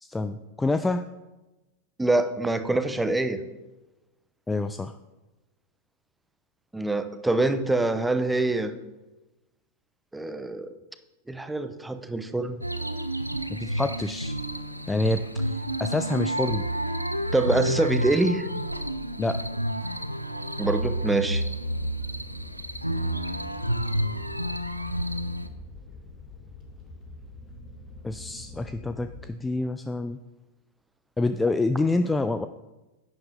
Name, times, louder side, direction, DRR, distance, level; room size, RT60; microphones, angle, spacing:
voice 1, 0.0-1.0 4.5-4.9 13.5-14.4 14.8-16.6 19.2-19.4 28.0-30.2 31.2-32.5, left 2 dB, 10° left, 10 dB, 0.4 m, -27 dB
voice 2, 2.0-3.4 6.7-8.7 10.1-10.7 11.3-12.6 17.3-18.5 20.6-21.4, right 2 dB, 5° right, 10 dB, 0.8 m, -25 dB
sound 1, 12.6-25.5, right 1 dB, 90° right, 0.6 m, -30 dB
sound 2, 21.5-29.3, left 1 dB, 35° left, 2.8 m, -44 dB
10.5 x 9.5 x 3.8 m, 1.1 s
figure-of-eight pair, 90°, 0 cm